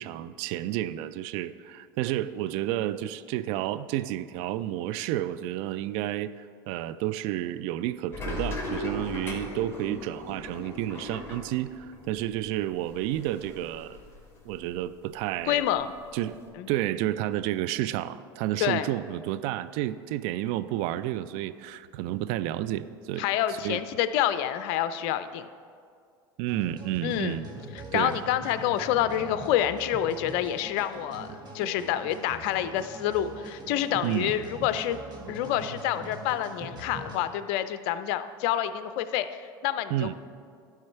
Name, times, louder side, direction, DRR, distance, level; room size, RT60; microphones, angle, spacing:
voice 1, 0.0-6.3 6.7-14.0 14.5-15.6 16.1-16.4 16.7-23.3 23.6-23.8 26.4-27.5 27.9-28.2 34.0-34.3 39.9-40.1, right 13 dB, 60° right, 14 dB, 0.4 m, -31 dB
sound 1, 8.1-14.8 15.1-16.5, left 2 dB, 20° left, 1.9 m, -38 dB
voice 2, 15.5-15.9 16.6-16.7 18.6-18.9 23.2-25.5 27.0-27.4 27.7-31.3 31.5-35.0 35.3-39.3 39.6-40.1, left 11 dB, 60° left, 12 dB, 0.4 m, -28 dB
sound 2, 26.5-37.2, right 2 dB, 35° right, 1.7 m, -42 dB
11.5 x 4.6 x 4.5 m, 2.2 s
hypercardioid pair, 85°, 12 cm